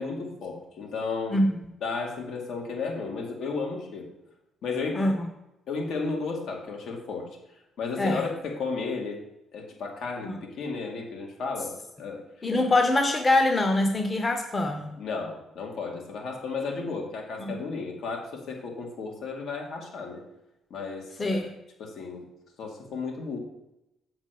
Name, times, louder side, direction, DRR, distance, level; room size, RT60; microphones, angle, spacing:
voice 1, 0.0-1.4 1.8-4.1 4.6-5.0 5.7-7.3 7.8-9.2 9.5-12.2 15.0-20.2 20.7-21.4 21.8-22.3 22.6-23.4, left 4 dB, 75° left, 1 dB, 2.3 m, -33 dB
voice 2, 1.3-1.6 4.9-5.2 8.0-8.2 10.2-10.4 12.4-14.9 17.4-17.6 21.2-21.5, left 2 dB, 25° left, 5 dB, 1.0 m, -24 dB
7.1 x 4.6 x 6.8 m, 0.89 s
cardioid pair, 90°, 0 cm